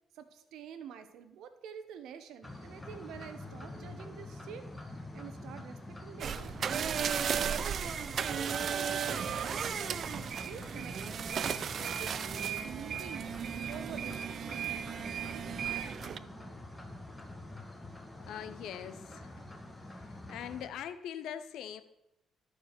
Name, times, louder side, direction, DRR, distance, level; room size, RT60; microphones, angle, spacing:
voice 1, 0.1-4.7 5.1-7.6 8.2-10.2 10.5-13.3 13.7-16.6, right 8 dB, 85° right, 10 dB, 0.9 m, -48 dB
sound 1, 2.4-20.7, left 2 dB, 10° left, 1.6 m, -46 dB
sound 2, 6.2-16.2, right 8 dB, 55° right, 0.4 m, -35 dB
voice 2, 18.2-19.3 20.3-21.8, left 9 dB, 80° left, 11 dB, 0.7 m, -42 dB
13.0 x 4.8 x 6.5 m, 0.87 s
cardioid pair, 90°, 0 cm